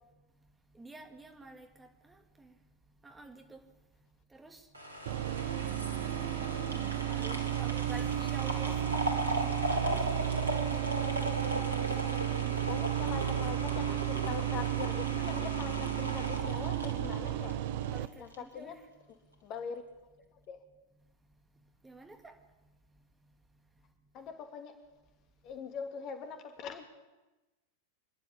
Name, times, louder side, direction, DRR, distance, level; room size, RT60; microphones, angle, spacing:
voice 1, 0.8-2.5 3.0-3.6 4.3-4.6 6.3-9.3 15.4-15.6 17.8-18.8 21.8-22.3, right 2 dB, 10° right, 4 dB, 2.6 m, -49 dB
sound 1, 4.7-18.0 18.3-18.4, equal, 80° right, 3.1 m, -37 dB
sound 2, 5.1-18.1, right 12 dB, 50° right, 1.0 m, -33 dB
voice 2, 12.7-17.5 18.2-18.7 19.4-19.8 20.5-20.6 24.1-24.7 25.4-26.8, left 6 dB, 35° left, 6 dB, 2.6 m, -42 dB
26.0 x 11.5 x 8.8 m, 1.1 s
figure-of-eight pair, 90°, 0 cm